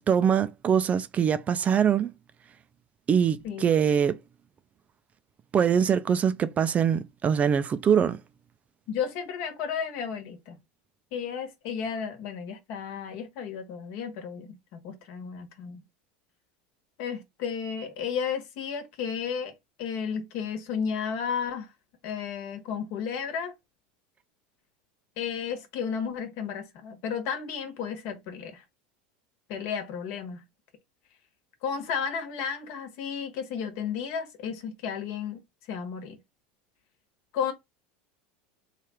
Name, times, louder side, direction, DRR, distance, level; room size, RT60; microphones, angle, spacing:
voice 1, 0.1-2.1 3.1-4.2 5.5-8.2, right 7 dB, 30° right, 0.4 m, -23 dB
voice 2, 8.9-10.6 11.1-15.8 17.0-19.5 19.8-21.7 22.0-23.5 25.2-28.6 29.5-30.4 31.6-35.4 35.7-36.2 37.3-37.5, left 7 dB, 60° left, 1.2 m, -33 dB
3.3 x 2.4 x 4.2 m
supercardioid pair, 120°, 5 cm